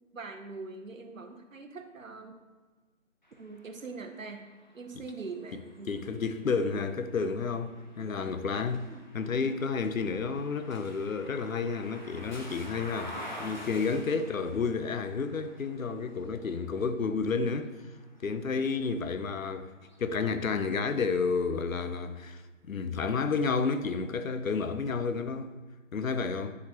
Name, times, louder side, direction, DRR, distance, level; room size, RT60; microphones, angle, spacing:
voice 1, 0.0-2.3 3.4-6.2 6.7-6.8 8.0-8.3 8.9-9.0 14.0-14.2 18.8-18.9, right 4 dB, 75° right, 0.9 m, -43 dB
sound 1, 3.2-19.2 19.7-21.0, equal, 35° left, 0.7 m, -49 dB
voice 2, 5.8-8.9 9.1-17.7 18.2-19.7 20.0-22.4 22.7-25.5 25.9-26.6, left 5 dB, 85° left, 0.7 m, -31 dB
9.4 x 4.1 x 2.9 m
figure-of-eight pair, 175°, 40 cm